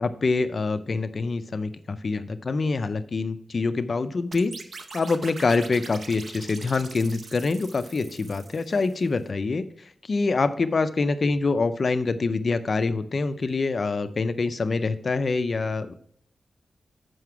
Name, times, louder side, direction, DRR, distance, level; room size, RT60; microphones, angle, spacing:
voice 1, 0.0-4.5 4.9-15.9, left 3 dB, 45° left, 10 dB, 0.5 m, -25 dB
sound 1, 4.3-9.1, right 3 dB, 55° right, 0.8 m, -43 dB
7.7 x 5.7 x 4.7 m, 0.65 s
wide cardioid pair, 140°, 0 cm